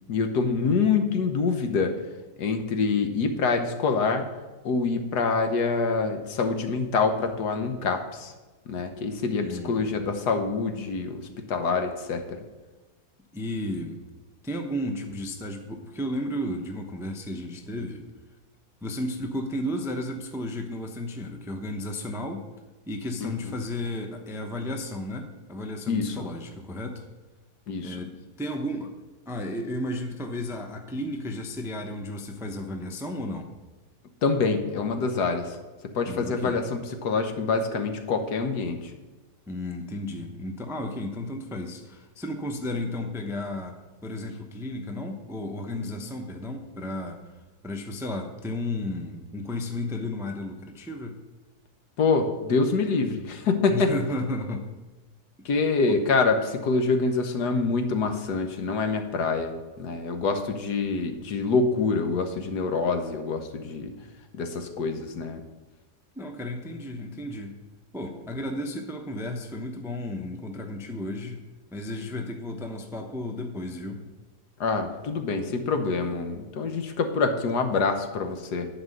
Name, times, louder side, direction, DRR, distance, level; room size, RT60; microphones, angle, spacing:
voice 1, 0.1-1.9 2.4-4.3 4.6-8.3 8.7-12.4 23.2-23.5 25.9-26.2 27.7-28.0 34.2-35.6 35.9-38.9 52.0-53.9 55.4-63.9 64.3-65.4 74.6-78.7, left 4 dB, 75° left, 6 dB, 1.6 m, -26 dB
voice 2, 9.4-10.0 13.3-14.0 14.4-18.1 18.8-22.5 22.9-27.1 27.8-28.9 29.3-33.5 36.0-36.6 39.5-47.2 47.6-51.2 53.7-54.7 55.9-56.0 66.2-67.6 67.9-71.4 71.7-74.0, left 1 dB, 5° right, 4 dB, 0.5 m, -33 dB
11.0 x 4.8 x 7.8 m, 1.2 s
omnidirectional pair, 1.8 m